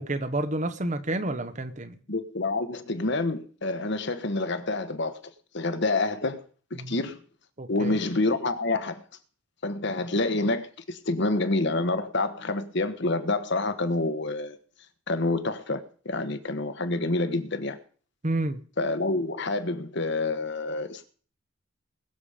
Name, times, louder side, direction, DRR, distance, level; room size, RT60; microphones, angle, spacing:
voice 1, 0.0-1.9 6.8-7.0 7.6-8.0 18.2-18.6, right 2 dB, 35° right, 1.0 m, -30 dB
voice 2, 2.1-5.2 5.5-6.4 6.7-7.2 7.7-9.0 9.6-14.6 15.1-17.8 18.8-21.1, left 2 dB, 55° left, 1.3 m, -28 dB
21.0 x 7.1 x 5.1 m
head